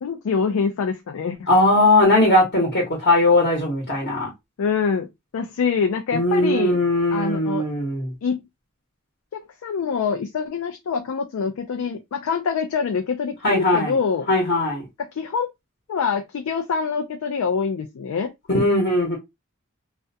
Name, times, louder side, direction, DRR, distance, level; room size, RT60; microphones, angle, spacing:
voice 1, 0.0-1.4 4.6-5.1 5.3-6.7 7.1-7.7 8.2-8.4 9.3-14.3 15.0-15.5 15.9-18.3, left 6 dB, 75° left, 0.4 m, -25 dB
voice 2, 1.5-4.3 6.1-8.1 13.4-13.9 14.3-14.8 18.5-19.2, left 1 dB, 50° left, 0.9 m, -19 dB
2.4 x 2.1 x 2.6 m
head